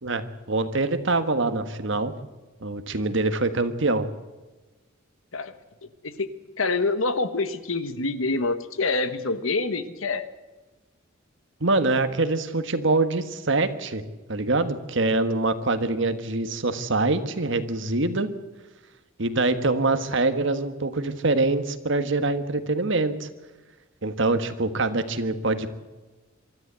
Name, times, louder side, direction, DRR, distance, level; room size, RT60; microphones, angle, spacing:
voice 1, 0.0-2.1 2.6-4.1 11.6-14.0 14.3-18.3 19.2-23.3 24.0-25.7, right 2 dB, 65° right, 9 dB, 1.5 m, -24 dB
voice 2, 6.6-10.3, left 3 dB, 80° left, 11 dB, 1.4 m, -26 dB
24.0 x 13.5 x 8.2 m, 1.2 s
head